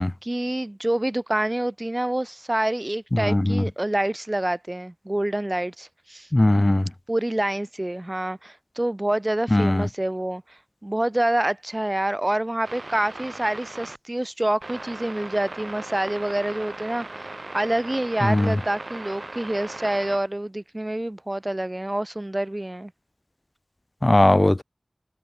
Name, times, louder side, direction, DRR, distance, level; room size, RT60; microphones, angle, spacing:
voice 1, 0.0-6.3 7.1-22.9, right 1 dB, 30° right, 4.8 m, -27 dB
voice 2, 3.1-3.6 6.3-6.8 9.5-9.8 18.2-18.5 24.0-24.6, left 1 dB, 35° left, 0.8 m, -19 dB
sound 1, 12.6-14.0 14.6-20.2, right 2 dB, 55° right, 6.1 m, -38 dB
wide cardioid pair, 55°, 0 cm